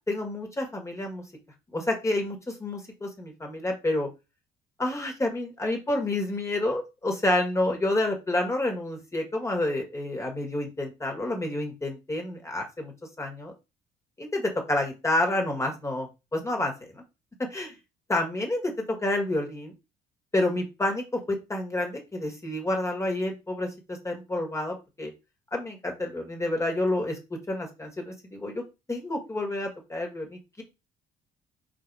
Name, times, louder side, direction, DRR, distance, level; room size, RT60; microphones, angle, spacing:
voice 1, 0.1-1.2 1.7-4.1 4.8-12.9 13.2-13.5 14.2-17.0 17.5-17.7 18.1-19.7 20.3-25.1 25.5-27.2 27.5-28.6 28.9-30.6, left 1 dB, 15° left, 2 dB, 1.6 m, -29 dB
4.1 x 2.8 x 4.6 m, 0.26 s
cardioid pair, 110°, 17 cm